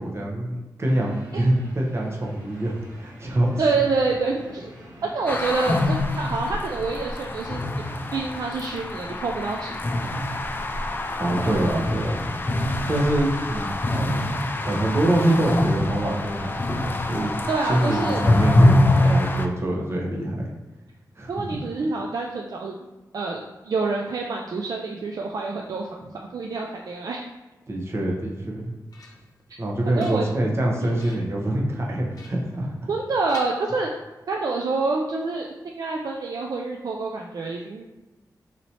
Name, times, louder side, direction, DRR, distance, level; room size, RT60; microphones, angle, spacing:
voice 1, 0.0-3.6 11.2-12.2 12.9-14.3 14.7-17.3 17.6-20.5 21.2-21.3 27.7-28.7 29.6-32.7, right 1 dB, 40° right, -2 dB, 0.9 m, -25 dB
sound 1, 0.8-17.8, equal, 85° right, 1.3 m, -48 dB
voice 2, 3.6-4.7 5.0-9.8 17.5-18.2 21.3-22.7 23.1-25.9 26.3-27.3 29.9-30.3 30.8-30.9 32.9-33.9 34.3-37.9, right 3 dB, 60° right, 0 dB, 0.4 m, -27 dB
sound 2, 5.3-19.5, left 1 dB, 30° left, 0.3 m, -24 dB
sound 3, 28.5-29.4 29.8-30.6 31.0-31.4 32.1-33.0 33.3-34.2, left 2 dB, 60° left, 0.7 m, -47 dB
4.1 x 3.0 x 2.8 m, 1.1 s
cardioid pair, 65°, 7 cm